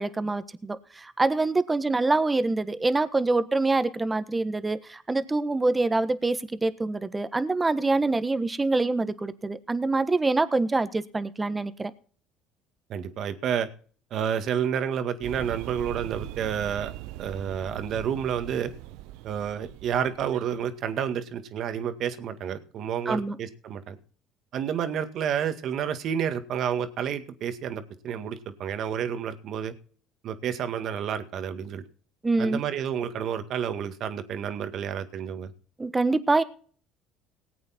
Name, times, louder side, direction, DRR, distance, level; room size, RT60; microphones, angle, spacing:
voice 1, 0.0-11.9 23.0-23.4 32.2-32.6 35.8-36.4, right 3 dB, 20° right, 13 dB, 1.4 m, -25 dB
voice 2, 12.9-13.7 14.1-16.9 17.2-18.7 19.2-24.0 24.5-29.7 30.2-31.8 32.4-35.5, right 8 dB, 60° right, 9 dB, 1.9 m, -30 dB
sound 1, 15.2-20.7, right 16 dB, 75° right, 0.6 m, -41 dB
19.0 x 8.6 x 4.4 m, 0.44 s
hypercardioid pair, 70°, 0 cm